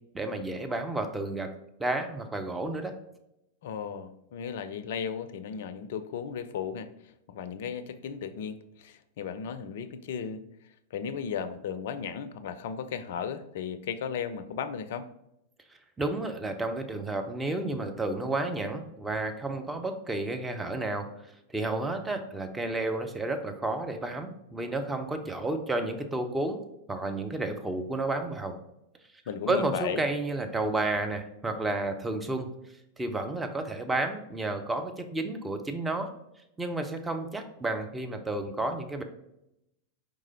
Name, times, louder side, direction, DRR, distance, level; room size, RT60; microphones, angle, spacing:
voice 1, 0.1-1.5 1.8-2.9 16.0-21.1 21.5-26.6 26.9-28.6 29.5-32.5 33.0-36.1 36.6-39.0, right 2 dB, 10° right, 5 dB, 0.5 m, -31 dB
voice 2, 3.6-6.9 7.3-10.4 10.9-15.1 29.3-30.0, left 7 dB, 55° left, 12 dB, 0.4 m, -35 dB
4.8 x 3.7 x 2.7 m, 0.83 s
figure-of-eight pair, 90°, 0 cm